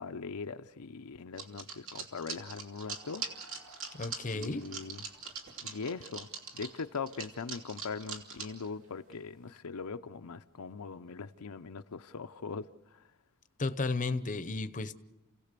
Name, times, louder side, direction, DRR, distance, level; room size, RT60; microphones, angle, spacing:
voice 1, 0.0-3.2 4.3-5.0 5.6-6.3 6.5-12.7, left 5 dB, 75° left, 0.7 m, -41 dB
sound 1, 1.4-8.7 9.1-9.2 9.4-9.5, right 5 dB, 60° right, 2.9 m, -42 dB
Crowd, 2.7-9.3, right 1 dB, 75° right, 3.8 m, -62 dB
voice 2, 3.9-4.7 13.6-14.9, left 3 dB, 35° left, 0.8 m, -33 dB
29.5 x 17.0 x 6.8 m
head